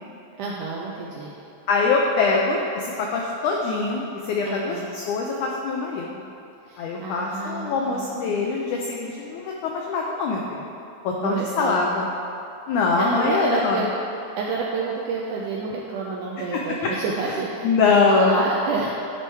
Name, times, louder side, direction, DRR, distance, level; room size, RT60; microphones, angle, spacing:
voice 1, 0.4-1.4 4.5-4.9 6.7-8.4 11.2-11.9 12.9-13.9 14.3-19.0, right 3 dB, 80° right, -3 dB, 1.8 m, -29 dB
voice 2, 1.7-6.2 6.8-10.6 11.0-12.1 12.7-13.8 16.5-16.9 17.6-18.4, left 4 dB, 85° left, -1 dB, 1.7 m, -23 dB
10.5 x 4.5 x 4.5 m, 2.8 s
omnidirectional pair, 4.2 m